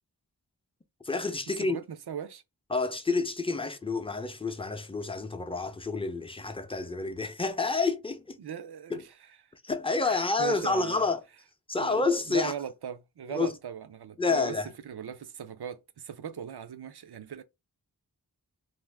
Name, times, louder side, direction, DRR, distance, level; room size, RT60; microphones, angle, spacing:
voice 1, 1.0-1.8 2.7-8.4 8.9-9.0 9.6-11.2 11.7-12.5 13.3-13.5 14.2-14.7, left 3 dB, 15° left, 0.5 m, -29 dB
voice 2, 1.6-2.4 8.4-9.0 10.0-11.1 11.8-14.6 14.8-17.4, right 8 dB, 75° right, 0.5 m, -39 dB
2.6 x 2.5 x 3.3 m
wide cardioid pair, 40°, 40 cm